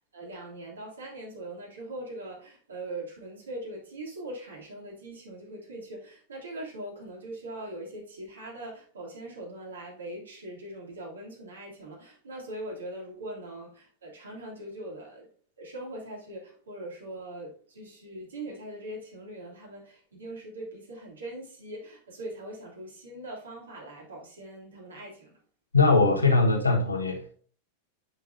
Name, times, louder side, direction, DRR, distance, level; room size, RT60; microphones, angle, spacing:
voice 1, 0.0-15.3 15.6-25.3, right 1 dB, 70° right, 3.0 m, -41 dB
voice 2, 25.7-27.4, left 3 dB, 80° left, 1.5 m, -21 dB
7.8 x 6.5 x 2.7 m
figure-of-eight pair, 90°, 0 cm